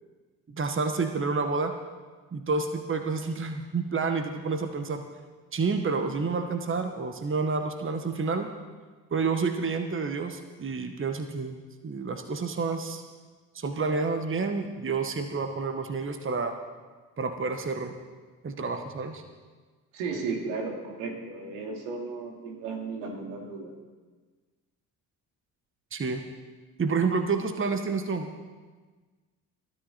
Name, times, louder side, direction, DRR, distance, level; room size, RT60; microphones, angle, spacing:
voice 1, 0.5-1.7 2.3-5.0 5.5-8.5 9.1-11.6 11.8-13.0 13.5-16.5 17.2-17.9 18.4-19.2 25.9-26.2 26.8-28.3, right 4 dB, 25° right, 6 dB, 1.6 m, -29 dB
voice 2, 19.9-23.7, right 4 dB, 70° right, 2 dB, 2.8 m, -34 dB
22.0 x 13.5 x 4.4 m, 1.4 s
figure-of-eight pair, 50°, 47 cm